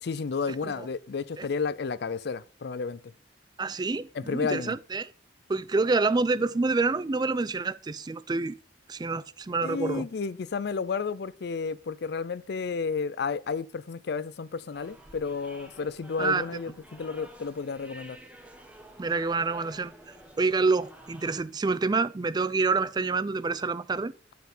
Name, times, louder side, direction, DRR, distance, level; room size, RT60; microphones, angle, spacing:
voice 1, 0.0-3.1 4.1-4.8 9.6-18.2, left 5 dB, 65° left, 0.5 m, -32 dB
voice 2, 3.6-5.1 5.5-8.6 8.9-10.1 16.2-16.4 19.0-19.9 20.4-24.1, right 3 dB, 25° right, 0.4 m, -27 dB
sound 1, 14.7-21.4, right 1 dB, 10° right, 1.2 m, -50 dB
9.3 x 4.7 x 5.4 m
head